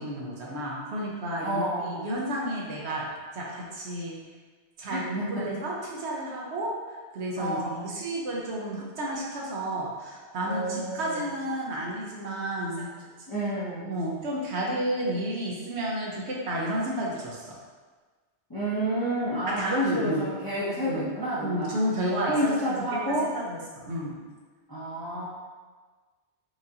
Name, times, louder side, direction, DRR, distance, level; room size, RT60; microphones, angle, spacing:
voice 1, 0.0-3.0 3.3-4.1 4.8-12.9 13.8-17.4 19.5-20.3 20.9-21.1 21.4-22.7 23.1-23.6 23.8-24.1, right 1 dB, 75° right, -4 dB, 1.1 m, -31 dB
voice 2, 1.4-2.1 4.9-5.4 7.4-7.9 10.4-11.2 13.3-14.0 18.5-21.8 22.3-23.3 24.7-25.3, equal, 25° left, -9 dB, 0.6 m, -29 dB
4.7 x 2.5 x 2.8 m, 1.4 s
omnidirectional pair, 1.2 m